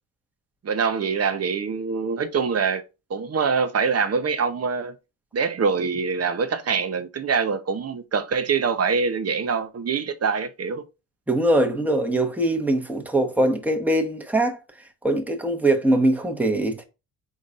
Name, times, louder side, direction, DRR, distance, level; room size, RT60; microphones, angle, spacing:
voice 1, 0.6-2.8 3.1-4.9 5.3-10.8, right 5 dB, 40° right, 0.8 m, -24 dB
voice 2, 11.3-14.6 15.0-16.8, right 1 dB, 5° right, 1.2 m, -22 dB
5.0 x 4.0 x 2.5 m
cardioid pair, 75°, 40 cm